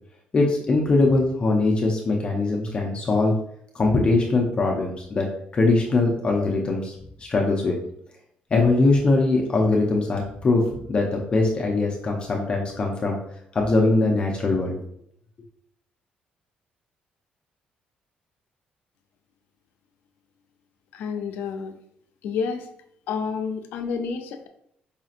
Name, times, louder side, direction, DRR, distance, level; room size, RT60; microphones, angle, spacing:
voice 1, 0.3-3.3 3.7-5.3 5.5-7.8 8.5-13.2 13.5-14.8, left 3 dB, 30° left, 0 dB, 0.6 m, -21 dB
voice 2, 20.9-21.7 22.2-22.7 23.1-24.5, left 5 dB, 85° left, 6 dB, 0.5 m, -29 dB
4.9 x 2.7 x 2.5 m, 0.70 s
cardioid pair, 130°, 3 cm